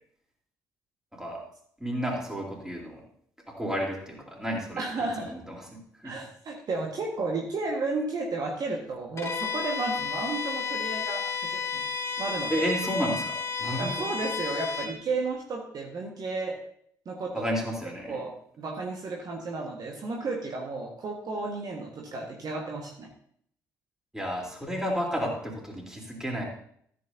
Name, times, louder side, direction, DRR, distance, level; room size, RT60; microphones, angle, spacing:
voice 1, 1.8-3.0 3.5-6.2 12.5-14.1 17.3-18.2 24.1-26.4, equal, 5° right, -1 dB, 3.6 m, -32 dB
voice 2, 4.8-5.3 6.0-11.8 12.2-12.7 13.8-16.6 17.0-17.6 18.1-23.1, right 3 dB, 45° right, 0 dB, 1.6 m, -33 dB
Bowed string instrument, 9.2-15.0, left 5 dB, 30° left, 1.9 m, -32 dB
14.0 x 8.6 x 2.8 m, 0.65 s
figure-of-eight pair, 45°, 9 cm